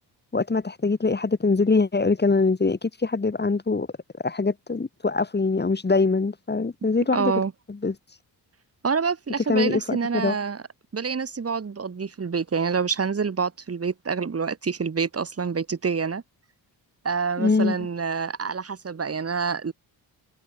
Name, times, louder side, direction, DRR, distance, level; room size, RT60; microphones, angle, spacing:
voice 1, 0.3-3.9 4.2-7.3 7.7-7.9 9.5-10.4 17.4-17.8, left 3 dB, 25° left, 4.1 m, -23 dB
voice 2, 7.1-7.5 8.8-10.6 10.9-16.2 17.0-19.7, right 5 dB, 35° right, 4.0 m, -27 dB
cardioid pair, 105°, 43 cm